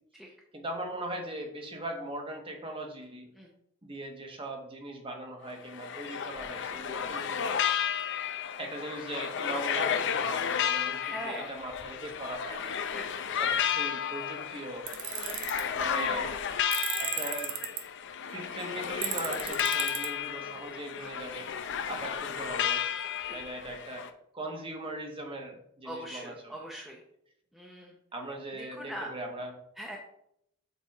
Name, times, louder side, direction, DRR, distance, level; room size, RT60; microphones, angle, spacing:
voice 1, 0.5-3.3 3.8-7.5 8.6-12.7 13.3-14.9 15.7-16.4 17.0-17.6 18.3-21.5 21.9-22.8 23.3-24.1 24.3-26.5 28.1-29.5, right 1 dB, 25° right, 2 dB, 1.0 m, -40 dB
sound 1, 5.5-24.1, left 8 dB, 55° left, 0.5 m, -32 dB
voice 2, 11.0-11.5 12.9-13.0 19.8-19.9 23.2-23.4 25.8-27.0 27.5-27.9 28.5-29.1 29.8-30.0, equal, ahead, -2 dB, 0.7 m, -41 dB
Tools, 14.9-15.6 16.7-17.8 19.0-20.1, right 10 dB, 60° right, 0.7 m, -34 dB
7.0 x 3.4 x 4.6 m, 0.74 s
head